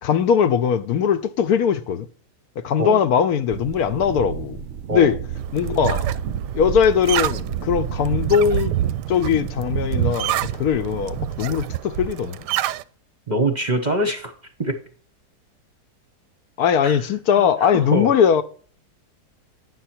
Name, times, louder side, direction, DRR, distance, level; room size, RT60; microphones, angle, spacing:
voice 1, 0.0-2.1 2.6-4.6 4.9-5.2 5.5-6.0 6.5-8.7 9.1-12.4 16.6-18.4, left 7 dB, 70° left, 1.1 m, -20 dB
sound 1, 3.5-11.5, right 8 dB, 65° right, 0.7 m, -33 dB
sound 2, 5.3-12.8, right 12 dB, 90° right, 1.2 m, -27 dB
voice 2, 13.3-14.3 14.6-14.7 16.8-17.0 17.6-18.1, right 1 dB, 35° right, 0.8 m, -23 dB
9.5 x 6.2 x 4.4 m
omnidirectional pair, 1.8 m